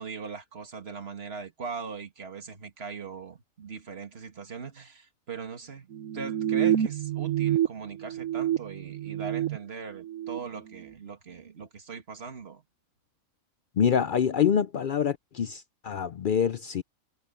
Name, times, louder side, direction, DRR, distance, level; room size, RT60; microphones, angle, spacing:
voice 1, 0.0-12.6, right 5 dB, 50° right, 2.2 m, -40 dB
sound 1, 5.9-7.7 8.0-9.6 10.0-10.4, right 11 dB, 80° right, 1.2 m, -28 dB
voice 2, 13.8-16.8, left 8 dB, 65° left, 0.5 m, -26 dB
omnidirectional pair, 1.4 m